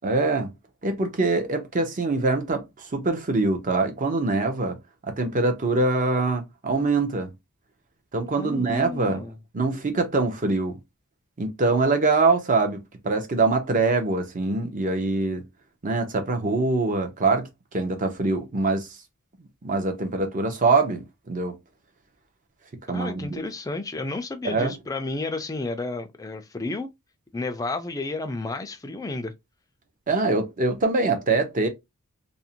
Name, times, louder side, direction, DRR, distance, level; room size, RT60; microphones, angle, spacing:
voice 1, 0.0-0.5 0.8-2.6 2.9-4.8 5.1-7.3 8.1-9.2 9.5-10.8 11.4-15.5 15.8-19.0 19.6-21.6 22.9-23.4 24.4-24.7 30.1-31.7, right 3 dB, 35° right, 0.6 m, -24 dB
voice 2, 8.4-9.4 22.9-26.9 27.3-29.3, left 3 dB, 15° left, 0.4 m, -31 dB
2.5 x 2.1 x 2.7 m
head